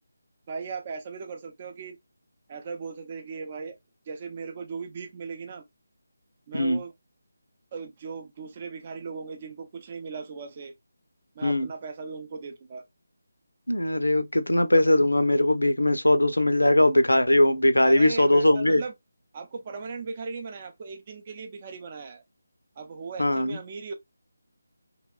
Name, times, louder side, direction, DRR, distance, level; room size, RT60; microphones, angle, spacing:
voice 1, 0.5-2.0 2.5-3.8 4.1-5.6 6.5-6.9 7.7-10.7 11.4-12.8 17.8-18.9 19.3-22.2 22.8-23.9, right 5 dB, 30° right, 0.5 m, -37 dB
voice 2, 13.7-18.8 23.2-23.6, left 1 dB, 85° left, 0.5 m, -20 dB
2.9 x 2.1 x 2.3 m
figure-of-eight pair, 155°, 0 cm